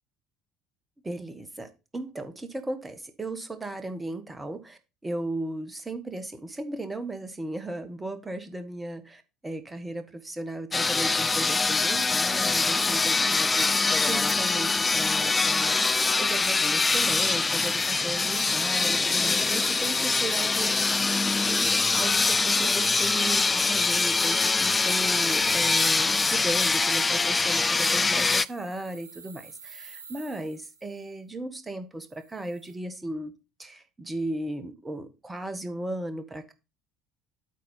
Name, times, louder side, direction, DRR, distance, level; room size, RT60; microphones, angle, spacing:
voice 1, 1.0-13.6 14.1-20.9 21.3-33.3 33.6-36.5, right 1 dB, 15° right, 10 dB, 1.4 m, -36 dB
sound 1, 10.7-28.5, left 3 dB, 20° left, 0.3 m, -24 dB
sound 2, 23.8-26.0 27.5-31.1 32.1-32.7, right 5 dB, 75° right, 1.1 m, -51 dB
8.3 x 4.2 x 5.7 m, 0.30 s
figure-of-eight pair, 60°, 0 cm